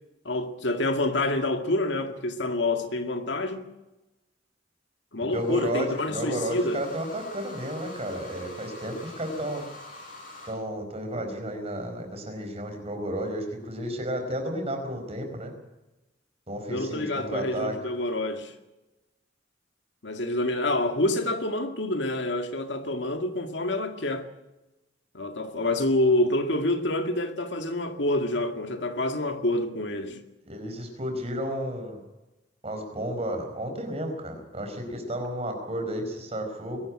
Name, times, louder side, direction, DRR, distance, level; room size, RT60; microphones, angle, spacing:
voice 1, 0.3-3.7 5.1-6.9 16.7-18.5 20.0-24.3 25.1-30.2, left 1 dB, 70° left, 2.0 m, -27 dB
voice 2, 5.2-9.6 10.4-15.5 16.5-17.7 30.4-32.0 32.6-36.8, equal, 35° right, 4.9 m, -32 dB
sound 1, 5.3-10.5, left 2 dB, 50° left, 5.9 m, -45 dB
22.0 x 13.0 x 9.9 m
head